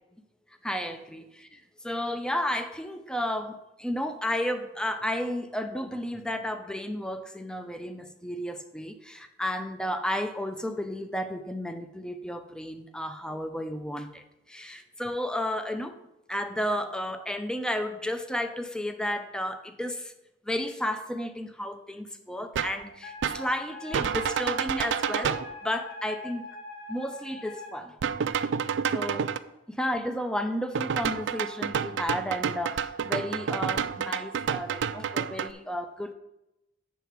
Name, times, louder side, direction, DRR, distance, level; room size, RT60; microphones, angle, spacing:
voice 1, 0.6-16.0 16.3-20.1 20.4-26.5 26.9-27.9 28.9-29.3 29.7-36.1, left 1 dB, 5° left, 8 dB, 0.6 m, -32 dB
sound 1, 22.5-22.8 23.2-23.5 23.9-25.5 28.0-29.4 30.7-35.5, right 7 dB, 65° right, 0.4 m, -29 dB
Wind instrument woodwind instrument, 23.0-27.7, left 3 dB, 60° left, 1.8 m, -43 dB
8.3 x 6.9 x 4.6 m, 0.91 s
head